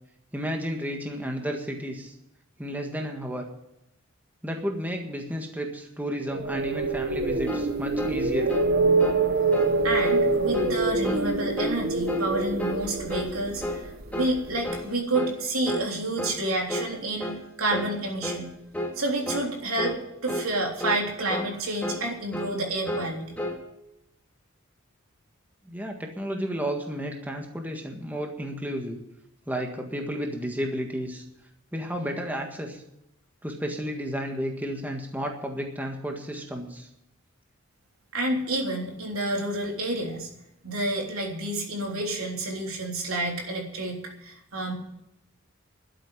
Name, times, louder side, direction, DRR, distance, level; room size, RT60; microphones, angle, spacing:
voice 1, 0.3-2.1 2.6-3.4 4.4-8.5 25.6-29.0 29.5-31.2 31.7-32.8 33.4-36.9, equal, 10° right, 2 dB, 1.7 m, -32 dB
sound 1, 6.3-14.4, right 3 dB, 50° right, 1.1 m, -25 dB
sound 2, 7.5-7.7 8.0-8.2 8.5-8.7 9.0-9.2 9.5-9.7 10.0-10.2 10.5-10.8 11.0-11.3 11.6-11.8 12.1-12.3 12.6-12.8 13.1-13.3 13.6-13.8 14.1-14.4 14.6-14.9 15.1-15.4 15.7-15.9 16.2-16.4 16.7-16.9 17.2-17.4 17.7-17.9 18.2-18.5 18.7-19.0 19.3-19.5 19.8-20.0 20.3-20.5 20.8-21.0 21.3-21.5 21.8-22.1 22.3-22.6 22.9-23.6, left 1 dB, 5° left, 2.2 m, -32 dB
voice 2, 9.8-13.8 14.1-17.3 17.6-18.5 19.0-20.0 20.2-23.4 38.1-40.3 40.6-44.7, right 1 dB, 85° right, 1 dB, 3.5 m, -29 dB
12.0 x 8.7 x 9.9 m, 0.82 s
head